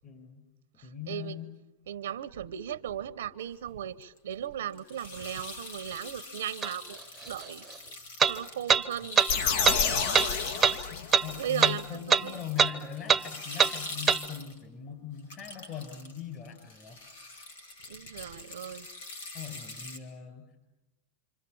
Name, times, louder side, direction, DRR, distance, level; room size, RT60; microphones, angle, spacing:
voice 1, 0.0-0.4 0.8-1.5 10.9-17.0 19.3-20.7, left 9 dB, 35° left, 6.8 m, -41 dB
voice 2, 1.1-1.4 1.9-7.0 7.3-7.6 8.3-9.2 11.4-12.3 17.9-18.9, right 10 dB, 90° right, 0.9 m, -37 dB
sound 1, 4.0-4.2 4.7-14.6 15.2-16.2 16.5-20.0, left 2 dB, 85° left, 3.5 m, -42 dB
sound 2, 6.6-6.7 8.2-8.3 8.7-8.8 9.2-9.3 9.6-9.8 10.1-10.3 10.6-10.8 11.1-11.3 11.6-11.8 12.1-12.2 12.6-12.7 13.1-13.2 13.6-13.7 14.1-14.2, right 7 dB, 20° right, 0.8 m, -22 dB
sound 3, 9.3-11.4, left 6 dB, 70° left, 1.7 m, -29 dB
27.5 x 25.5 x 7.1 m
supercardioid pair, 120°, 0 cm